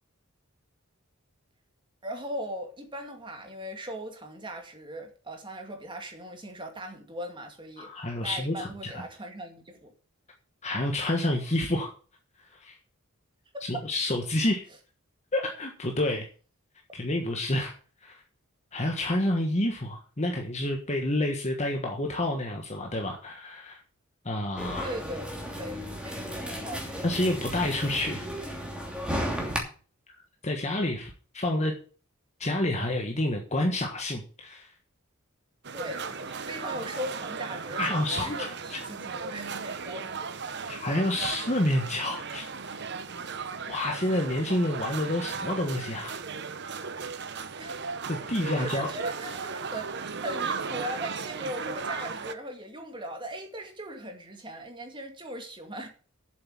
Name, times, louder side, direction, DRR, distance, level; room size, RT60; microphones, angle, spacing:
voice 1, 2.0-7.9 8.2-9.9 13.5-13.9 24.8-25.3 25.6-27.0 35.7-40.3 40.7-40.8 41.2-41.3 47.6-47.9 48.4-55.9, equal, 20° right, 2.4 m, -39 dB
voice 2, 7.8-8.9 10.6-11.9 12.6-12.8 13.6-14.6 15.3-16.3 16.9-17.7 18.0-18.2 18.7-23.8 24.2-24.9 27.0-28.2 30.4-31.7 32.4-34.7 37.8-38.8 40.7-42.8 43.7-46.2 46.7-46.8 48.1-48.9, left 1 dB, 30° left, 1.5 m, -29 dB
sound 1, 24.6-29.6, equal, 5° right, 2.9 m, -34 dB
sound 2, 35.6-52.3, right 5 dB, 50° right, 0.9 m, -36 dB
7.9 x 7.8 x 8.8 m
head